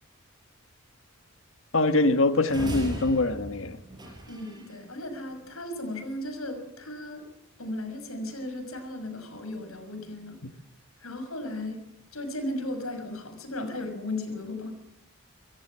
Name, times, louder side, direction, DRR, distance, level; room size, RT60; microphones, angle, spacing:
voice 1, 1.7-3.8, left 2 dB, 65° left, 10 dB, 1.5 m, -23 dB
sound 1, 2.5-4.7, right 1 dB, 20° right, 5.7 m, -36 dB
voice 2, 4.3-7.2 7.6-10.4 11.0-11.8 12.1-14.7, left 1 dB, 85° left, 6 dB, 6.2 m, -35 dB
25.5 x 14.5 x 7.5 m, 0.82 s
head